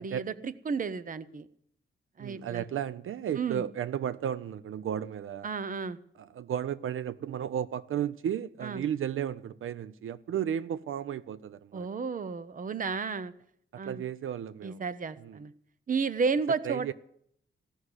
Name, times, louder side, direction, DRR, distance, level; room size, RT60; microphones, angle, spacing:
voice 1, 0.0-1.5 2.2-2.6 3.4-3.6 5.4-6.0 8.6-8.8 11.7-13.3 13.8-14.0 14.6-15.5 15.9-16.9, right 5 dB, 40° right, 0.7 m, -32 dB
voice 2, 2.2-5.5 6.2-11.9 13.7-14.8 15.2-15.4 16.6-16.9, right 9 dB, 75° right, 0.5 m, -34 dB
16.0 x 6.3 x 9.7 m
wide cardioid pair, 130°, 21 cm